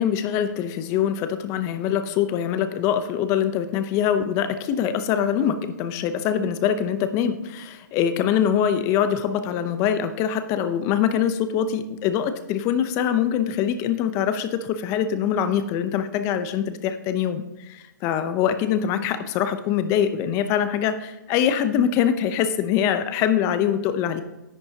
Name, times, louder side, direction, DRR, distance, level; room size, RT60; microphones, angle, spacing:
voice 1, 0.0-24.2, left 9 dB, 30° left, 10 dB, 0.7 m, -23 dB
10.5 x 8.6 x 2.8 m, 1.0 s
hypercardioid pair, 140°, 10 cm